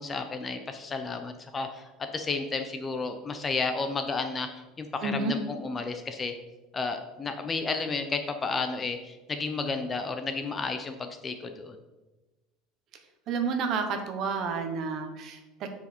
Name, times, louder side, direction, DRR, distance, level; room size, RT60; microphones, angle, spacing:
voice 1, 0.0-6.3 6.7-11.8, left 4 dB, 15° left, 7 dB, 0.4 m, -32 dB
voice 2, 5.0-5.3 13.3-15.7, right 4 dB, 35° right, 6 dB, 0.9 m, -30 dB
9.6 x 4.8 x 4.3 m, 1.1 s
cardioid pair, 175°, 0 cm